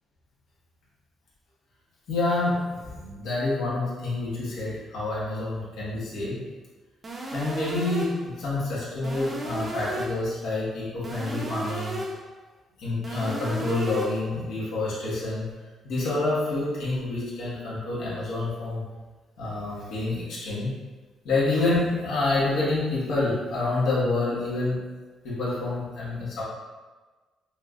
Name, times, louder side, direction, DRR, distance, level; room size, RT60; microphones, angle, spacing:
voice 1, 2.1-6.4 7.3-12.0 12.8-15.5 15.8-18.8 19.4-20.7 21.2-24.8 25.2-26.4, left 2 dB, 85° left, -7 dB, 1.5 m, -28 dB
sound 1, 7.0-8.3 9.0-10.3 11.0-12.3 13.0-14.3, right 1 dB, 25° right, 0.6 m, -34 dB
6.0 x 2.4 x 2.5 m, 1.3 s
cardioid pair, 140°, 0 cm